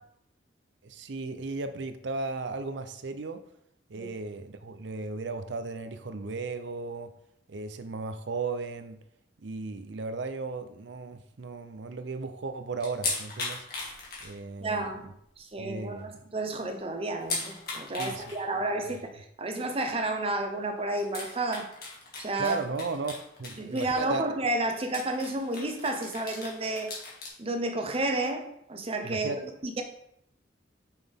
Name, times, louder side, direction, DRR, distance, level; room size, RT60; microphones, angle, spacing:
voice 1, 0.8-3.4 3.9-7.1 7.5-9.0 9.4-13.7 14.2-15.1 15.6-16.2 18.0-18.2 22.4-23.1 23.4-24.3 29.0-29.4, right 3 dB, 70° right, 9 dB, 0.6 m, -35 dB
sound 1, 12.8-14.8 15.1-15.2 15.7-15.8 16.0-16.1 17.2-18.4 18.9-19.0 20.3-20.4 21.0-24.2 24.5-24.6 24.8-27.3, left 3 dB, 55° left, 2.0 m, -37 dB
voice 2, 14.6-15.0 15.4-21.7 22.2-22.6 23.6-26.9 27.4-29.3 29.6-29.8, right 2 dB, 30° right, 5 dB, 0.8 m, -31 dB
6.1 x 5.6 x 3.6 m, 0.75 s
head